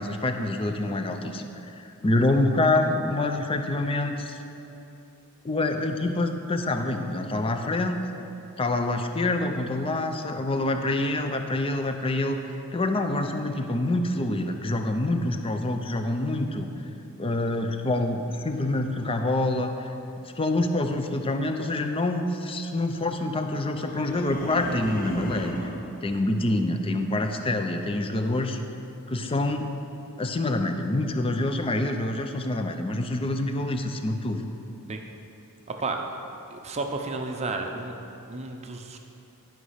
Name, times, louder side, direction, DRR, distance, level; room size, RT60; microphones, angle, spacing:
voice 1, 0.0-1.4 1.8-4.4 5.4-8.0 8.6-12.4 12.7-16.7 17.2-19.9 20.2-25.5 26.0-28.6 29.1-29.7 30.2-34.4, left 2 dB, 25° left, 6 dB, 0.5 m, -26 dB
sound 1, 23.8-25.9, equal, 40° left, 1.1 m, -36 dB
voice 2, 35.7-36.0 36.5-37.9 38.3-39.0, right 3 dB, 30° right, 3 dB, 0.6 m, -32 dB
11.5 x 5.2 x 5.6 m, 2.9 s
head